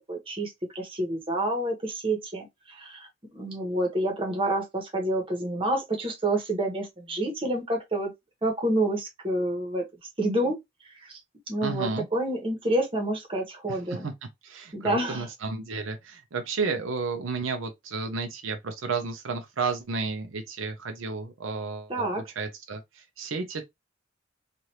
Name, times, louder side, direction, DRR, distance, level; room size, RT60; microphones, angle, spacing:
voice 1, 0.1-3.1 3.3-8.1 8.4-9.8 10.2-10.6 11.0-11.1 11.5-14.1 14.7-15.3 21.9-22.2, right 1 dB, 25° right, 1.1 m, -28 dB
voice 2, 11.6-12.1 13.7-14.1 14.4-23.6, right 4 dB, 75° right, 0.6 m, -32 dB
3.2 x 2.5 x 2.8 m
head